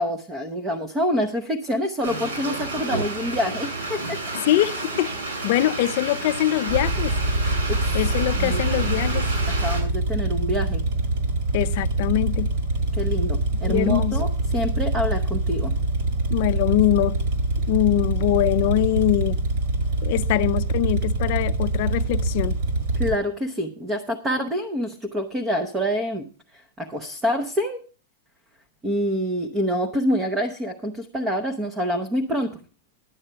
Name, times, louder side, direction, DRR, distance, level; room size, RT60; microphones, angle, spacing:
voice 1, 0.0-4.4 7.7-7.8 8.4-8.7 9.6-10.8 13.0-15.7 23.0-26.3 26.8-27.8 28.8-32.5, equal, 10° right, 0.7 m, -26 dB
sound 1, 2.0-9.8, right 2 dB, 75° right, 6.8 m, -31 dB
voice 2, 4.3-5.1 5.4-7.1 7.9-9.2 11.5-12.5 13.7-14.2 16.3-17.2 17.7-19.4 20.0-22.6, left 15 dB, 40° left, 0.4 m, -23 dB
sound 2, 6.7-23.2, right 2 dB, 45° right, 2.1 m, -24 dB
11.0 x 8.0 x 5.6 m
supercardioid pair, 175°, 0 cm